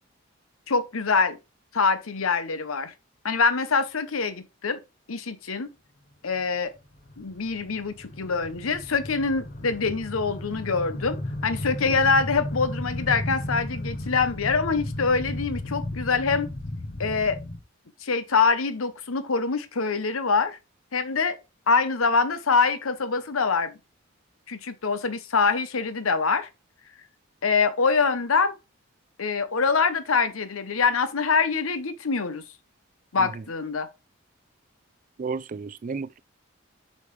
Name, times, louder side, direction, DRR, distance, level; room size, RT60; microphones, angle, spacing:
voice 1, 0.7-1.4 1.7-2.9 3.2-4.8 5.1-5.7 6.2-6.7 7.2-16.5 17.0-17.4 18.0-20.6 20.9-21.4 21.7-23.8 24.5-26.5 27.4-28.5 29.2-32.4 33.1-33.9, left 4 dB, 85° left, 0.9 m, -24 dB
sound 1, 6.8-17.6, left 1 dB, 40° left, 0.9 m, -34 dB
voice 2, 35.2-36.2, right 4 dB, 40° right, 0.3 m, -32 dB
8.2 x 5.4 x 3.3 m
head